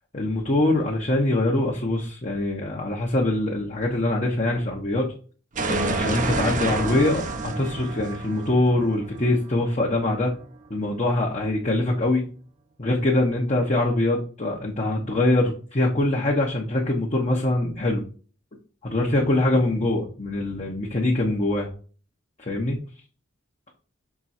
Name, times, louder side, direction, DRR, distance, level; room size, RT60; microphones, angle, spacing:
voice 1, 0.1-5.1 5.7-10.3 10.7-12.3 12.8-18.0 18.8-21.7 22.5-22.8, left 2 dB, 35° left, -2 dB, 1.0 m, -23 dB
sound 1, 5.6-10.3, right 3 dB, 40° right, 0.8 m, -29 dB
6.0 x 3.8 x 4.2 m, 0.39 s
head